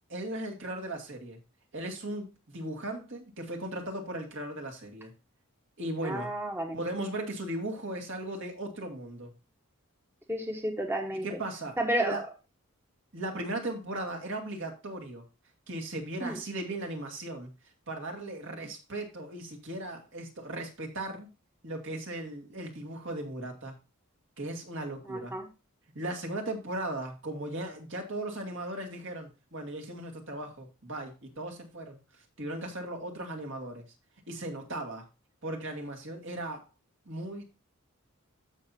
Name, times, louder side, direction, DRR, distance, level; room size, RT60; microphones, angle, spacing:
voice 1, 0.1-1.4 1.7-5.1 5.8-6.3 6.7-9.3 11.2-12.2 13.1-15.2 15.7-17.5 17.9-21.3 21.6-23.7 24.4-25.3 25.9-32.0 32.4-33.8 34.3-35.0 35.4-36.6 37.1-37.4, right 1 dB, 60° right, 2.1 m, -37 dB
voice 2, 6.0-6.8 10.3-11.4 11.8-12.2 16.2-16.4 25.1-25.5, right 1 dB, 10° right, 1.1 m, -31 dB
13.5 x 5.7 x 2.7 m
head